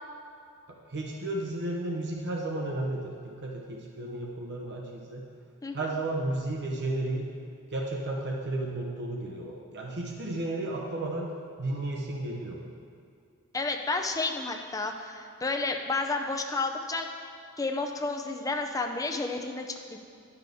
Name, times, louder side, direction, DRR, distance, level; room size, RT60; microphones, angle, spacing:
voice 1, 0.7-5.3 5.7-7.3 7.7-11.3 11.6-12.7, right 2 dB, 50° right, -1 dB, 0.8 m, -33 dB
voice 2, 13.5-17.1 17.6-20.0, left 3 dB, 15° left, 3 dB, 0.5 m, -31 dB
10.5 x 5.9 x 3.5 m, 2.4 s
head